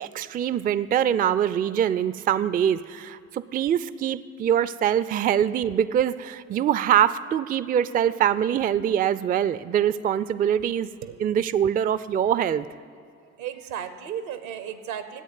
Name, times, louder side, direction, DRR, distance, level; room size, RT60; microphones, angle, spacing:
voice 1, 0.0-10.9 11.2-12.7, right 9 dB, 25° right, 17 dB, 0.3 m, -23 dB
voice 2, 13.4-15.2, right 9 dB, 80° right, 11 dB, 0.9 m, -34 dB
11.0 x 8.4 x 9.3 m, 2.5 s
hypercardioid pair, 50°, 42 cm